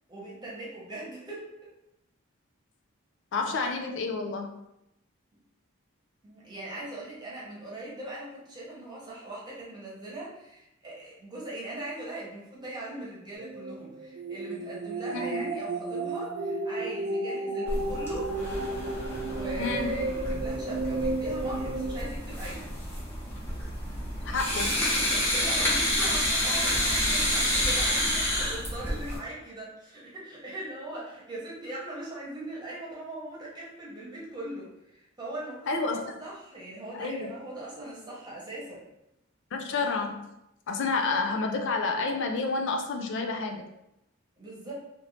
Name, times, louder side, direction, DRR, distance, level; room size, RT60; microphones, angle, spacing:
voice 1, 0.1-1.7 5.3-5.4 6.2-18.3 19.0-22.7 25.1-38.9 44.4-44.7, right 1 dB, 20° right, -6 dB, 1.0 m, -40 dB
voice 2, 3.3-4.6 15.1-15.4 19.6-19.9 24.2-24.9 35.7-36.1 36.9-37.3 39.5-40.3 40.7-43.6, left 4 dB, 65° left, 4 dB, 0.4 m, -30 dB
sound 1, 13.3-22.1, right 2 dB, 60° right, 0.5 m, -33 dB
sound 2, 17.7-29.2, left 1 dB, 10° left, 0.9 m, -29 dB
2.9 x 2.6 x 3.1 m, 0.85 s
head